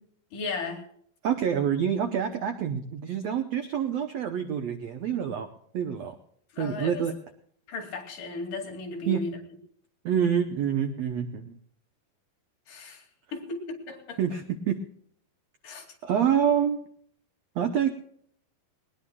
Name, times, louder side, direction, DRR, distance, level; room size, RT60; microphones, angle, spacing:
voice 1, 0.3-0.9 6.5-7.1 7.7-9.4 12.7-14.2 15.6-16.0, left 3 dB, 60° left, 0 dB, 4.1 m, -36 dB
voice 2, 1.2-5.5 5.7-6.1 6.6-7.1 9.1-9.2 10.0-11.6 14.2-14.8 16.0-16.8 17.5-17.9, right 8 dB, 80° right, 7 dB, 1.5 m, -27 dB
20.0 x 19.5 x 2.3 m, 0.64 s
omnidirectional pair, 4.4 m